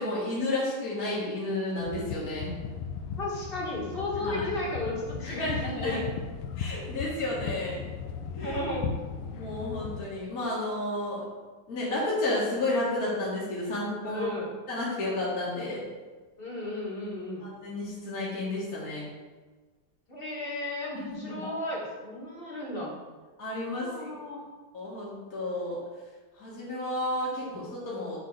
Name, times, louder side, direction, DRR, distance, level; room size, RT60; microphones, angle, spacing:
voice 1, 0.0-2.5 4.1-4.5 5.2-6.0 6.6-7.9 8.4-8.6 9.3-11.2 11.7-14.3 14.7-15.8 17.4-19.1 21.0-21.5 23.4-24.1 24.7-25.8 26.4-28.2, left 2 dB, 45° left, -7 dB, 2.1 m, -32 dB
sound 1, 1.8-10.0, left 6 dB, 75° left, 1.4 m, -37 dB
voice 2, 3.2-6.0 8.4-8.9 14.0-14.5 16.4-17.4 20.1-22.9 23.8-24.4 27.4-27.7, left 1 dB, 25° left, -4 dB, 1.9 m, -34 dB
7.3 x 4.0 x 6.5 m, 1.3 s
omnidirectional pair, 2.3 m